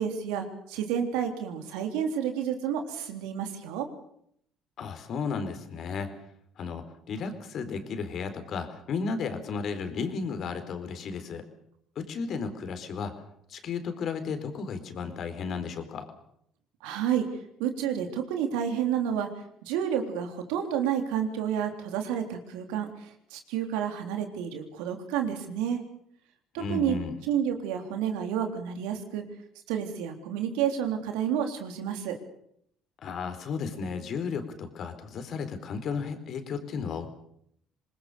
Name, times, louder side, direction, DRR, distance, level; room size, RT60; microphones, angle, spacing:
voice 1, 0.0-3.9 16.8-17.3 17.6-19.3 19.6-25.8 26.5-27.0 27.3-29.2 29.7-32.2, right 9 dB, 80° right, 5 dB, 3.5 m, -30 dB
voice 2, 4.8-6.1 6.6-11.4 12.0-13.1 13.5-16.1 26.6-27.1 33.0-37.1, left 5 dB, 55° left, 8 dB, 4.3 m, -34 dB
26.0 x 20.0 x 6.9 m, 0.71 s
supercardioid pair, 70°, 0 cm